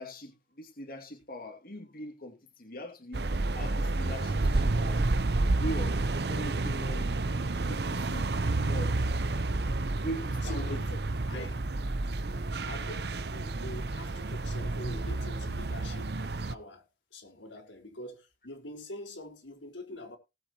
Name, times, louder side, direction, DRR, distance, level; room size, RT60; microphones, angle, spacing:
voice 1, 0.0-3.3 3.5-5.1 5.6-7.1 7.6-9.0 10.0-10.8 11.3-11.5, equal, 50° left, 2.4 m, -41 dB
sound 1, 3.1-16.5, right 2 dB, 60° right, 0.8 m, -30 dB
voice 2, 10.4-10.9 11.3-11.6 12.6-20.2, left 1 dB, 90° left, 4.7 m, -44 dB
19.0 x 8.4 x 3.0 m
head